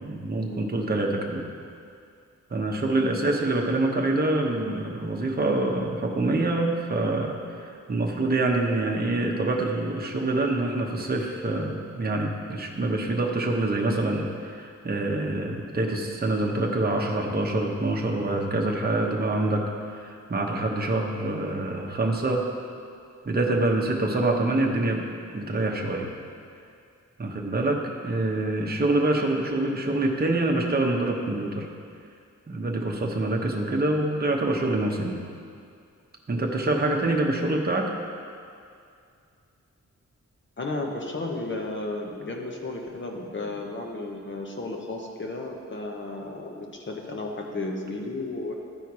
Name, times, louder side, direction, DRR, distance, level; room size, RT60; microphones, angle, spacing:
voice 1, 0.0-1.5 2.5-22.5 23.2-25.1 25.3-26.1 27.2-31.7 32.5-35.2 36.3-37.9, right 2 dB, 30° right, 0 dB, 0.8 m, -26 dB
voice 2, 40.6-48.5, left 2 dB, 40° left, 1 dB, 0.9 m, -34 dB
12.5 x 4.5 x 4.7 m, 2.3 s
wide cardioid pair, 155°, 29 cm